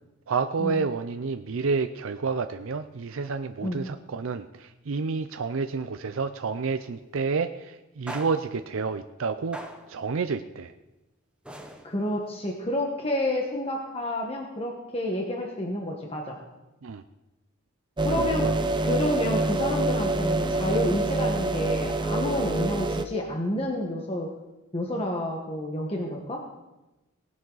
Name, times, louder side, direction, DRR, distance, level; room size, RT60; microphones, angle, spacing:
voice 1, 0.3-9.6 9.9-10.7 16.8-17.0 18.1-18.6, right 4 dB, 65° right, 9 dB, 0.5 m, -29 dB
sound 1, 6.8-7.0 8.1-8.7 9.5-10.1 11.4-12.2, equal, 5° right, 1.0 m, -41 dB
voice 2, 11.8-16.4 18.0-18.5 18.8-24.3 24.7-26.4, left 1 dB, 30° left, 0 dB, 1.4 m, -29 dB
sound 2, 18.0-23.0, right 2 dB, 20° right, 0.7 m, -26 dB
18.5 x 11.0 x 4.0 m, 1.0 s
head